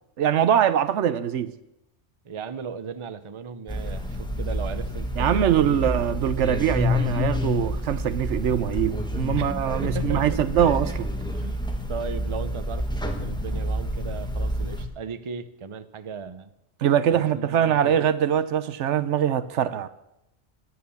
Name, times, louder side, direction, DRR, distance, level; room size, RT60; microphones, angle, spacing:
voice 1, 0.2-1.5 5.2-11.1 16.8-19.9, right 9 dB, 80° right, 1.0 m, -23 dB
voice 2, 2.2-5.9 9.4-9.5 9.8-10.6 11.4-11.6 11.9-16.5 17.1-17.9, right 5 dB, 30° right, 0.6 m, -36 dB
sound 1, 3.7-14.8, left 1 dB, 5° left, 1.3 m, -28 dB
14.5 x 9.6 x 7.0 m
omnidirectional pair, 1.2 m